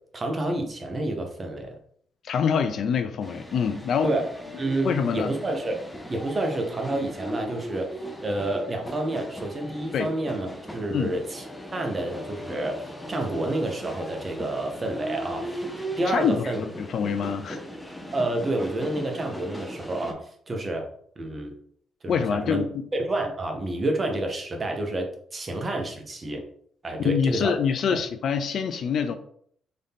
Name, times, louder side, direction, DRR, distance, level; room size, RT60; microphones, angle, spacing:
voice 1, 0.1-1.8 4.0-4.2 4.6-5.8 6.1-11.4 11.7-15.7 16.0-16.6 18.1-20.9 21.2-21.5 22.0-22.6 22.9-26.4 26.8-27.5, right 2 dB, 30° right, 0.9 m, -29 dB
voice 2, 2.2-4.2 4.8-5.3 9.9-10.1 10.9-11.1 16.1-17.6 22.1-22.8 27.0-29.2, left 7 dB, 65° left, 0.4 m, -25 dB
sound 1, 3.2-20.1, equal, 5° left, 0.7 m, -38 dB
3.8 x 2.7 x 3.5 m
cardioid pair, 90°, 0 cm